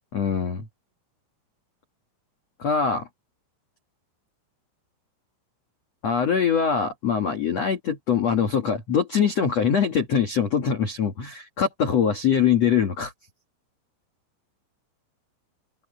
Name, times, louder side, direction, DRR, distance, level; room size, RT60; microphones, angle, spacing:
voice 1, 0.1-0.7 2.6-3.1 6.0-13.1, left 7 dB, 65° left, 1.6 m, -23 dB
open air
omnidirectional pair, 5.9 m